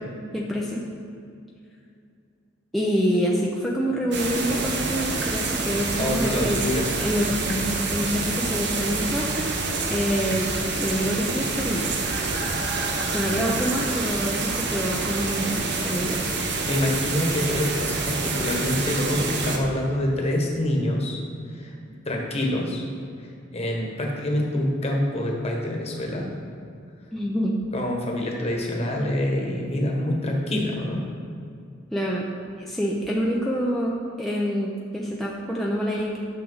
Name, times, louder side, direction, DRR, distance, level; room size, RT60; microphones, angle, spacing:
voice 1, 0.3-0.8 2.7-6.6 7.0-9.5 9.8-10.5 10.8-11.9 13.1-16.2 27.1-27.6 31.9-32.2 32.6-36.2, equal, ahead, -4 dB, 0.6 m, -26 dB
sound 1, 4.1-19.6, right 3 dB, 60° right, 0.9 m, -27 dB
voice 2, 6.0-6.9 16.4-21.2 21.5-21.7 22.0-22.8 23.2-23.3 23.5-26.3 27.7-31.0, left 1 dB, 30° left, 0 dB, 1.3 m, -26 dB
10.5 x 6.5 x 4.0 m, 2.4 s
head